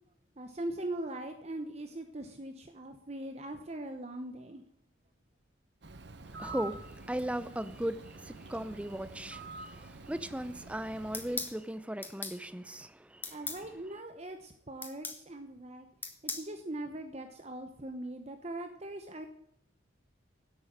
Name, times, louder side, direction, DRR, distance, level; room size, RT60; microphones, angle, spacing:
voice 1, 0.4-4.6 13.3-15.9 16.2-19.3, right 1 dB, 35° right, 0.9 m, -41 dB
Bird, 5.8-11.6, right 3 dB, 60° right, 1.0 m, -47 dB
voice 2, 6.3-13.4, right 1 dB, 5° right, 0.6 m, -38 dB
sound 1, 11.1-11.6 12.0-12.4 13.2-13.6 14.8-15.2 16.0-16.5, left 3 dB, 10° left, 1.2 m, -38 dB
11.0 x 8.4 x 8.9 m
head